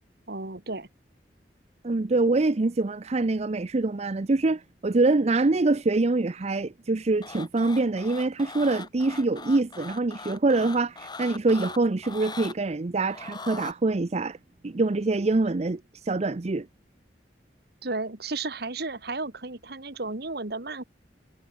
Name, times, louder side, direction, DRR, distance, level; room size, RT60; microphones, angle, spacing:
voice 1, 0.3-0.9 17.8-20.8, right 3 dB, 65° right, 2.2 m, -33 dB
voice 2, 1.8-14.4 14.6-16.7, right 3 dB, 40° right, 0.6 m, -25 dB
sound 1, 7.2-12.5 13.1-13.7, left 4 dB, 25° left, 2.0 m, -40 dB
head